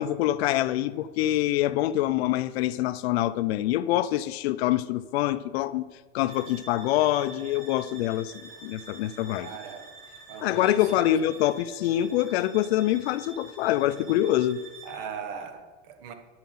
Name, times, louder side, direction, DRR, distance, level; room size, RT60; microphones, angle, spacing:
voice 1, 0.0-5.9 6.1-9.5 10.4-14.6, left 13 dB, 65° left, 0.6 m, -25 dB
sound 1, 6.3-15.1, right 4 dB, 30° right, 3.0 m, -47 dB
voice 2, 9.4-10.0 10.3-11.2 14.8-16.1, right 7 dB, 50° right, 1.3 m, -39 dB
9.7 x 5.6 x 7.3 m
supercardioid pair, 155°, 34 cm